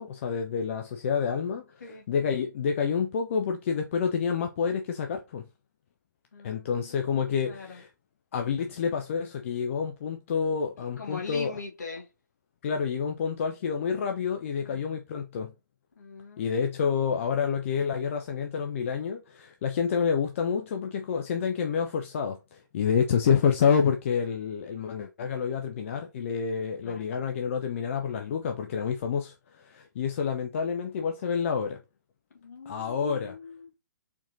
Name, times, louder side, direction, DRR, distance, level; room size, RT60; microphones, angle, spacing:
voice 1, 0.0-5.4 6.4-7.9 8.3-11.5 12.6-15.5 16.4-31.8 32.7-33.3, left 6 dB, 40° left, 0.4 m, -28 dB
voice 2, 6.3-7.8 10.8-12.1 14.6-14.8 15.9-16.6 26.8-27.1 32.4-33.7, left 4 dB, 60° left, 1.5 m, -42 dB
4.3 x 2.8 x 2.7 m
figure-of-eight pair, 125°, 11 cm